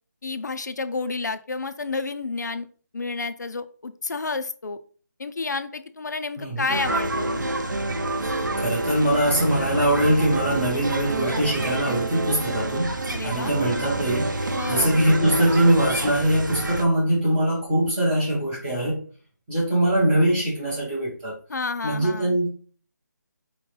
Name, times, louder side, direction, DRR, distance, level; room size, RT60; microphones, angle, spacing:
voice 1, 0.2-2.7 2.9-4.8 5.2-7.4 13.1-13.6 14.5-15.0 21.5-22.4, left 3 dB, 65° left, 10 dB, 0.4 m, -30 dB
sound 1, 6.7-16.1, right 2 dB, 65° right, 0.5 m, -30 dB
sound 2, 6.7-16.8, right 2 dB, 90° right, 0.8 m, -31 dB
voice 2, 8.2-13.0 13.2-19.0 19.5-21.3 21.8-22.5, right 1 dB, 5° right, -8 dB, 0.6 m, -22 dB
4.8 x 3.0 x 3.0 m, 0.41 s
figure-of-eight pair, 175°, 10 cm